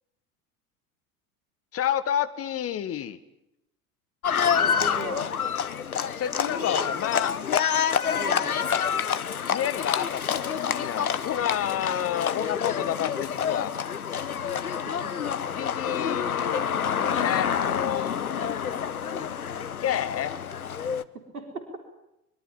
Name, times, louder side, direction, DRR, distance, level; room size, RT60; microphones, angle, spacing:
voice 1, 1.7-3.2 6.1-7.4 9.5-13.7 15.5-19.3 19.6-20.4, left 10 dB, 30° left, 13 dB, 1.8 m, -30 dB
Livestock farm animals working animals, 4.2-21.0, left 8 dB, 80° left, 1.2 m, -27 dB
voice 2, 4.4-5.3 6.6-6.9 8.1-8.6 14.5-15.1 15.9-16.0 21.3-21.6, right 2 dB, 75° right, 6 dB, 4.3 m, -37 dB
25.0 x 23.5 x 8.8 m, 0.85 s
figure-of-eight pair, 75°, 43 cm